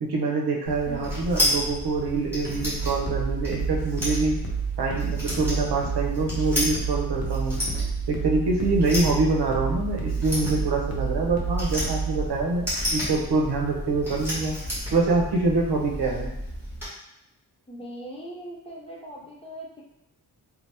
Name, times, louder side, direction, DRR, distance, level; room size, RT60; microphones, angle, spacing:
voice 1, 0.0-4.4 4.8-7.6 8.1-14.5 14.9-16.3, right 3 dB, 90° right, 0 dB, 0.7 m, -25 dB
sound 1, 0.6-16.9, equal, 5° right, 1.2 m, -32 dB
voice 2, 0.9-1.2 17.7-19.8, right 1 dB, 15° left, -4 dB, 0.4 m, -40 dB
sound 2, 2.7-12.3, right 6 dB, 65° left, 0.6 m, -30 dB
2.8 x 2.0 x 3.2 m, 0.88 s
wide cardioid pair, 175°, 39 cm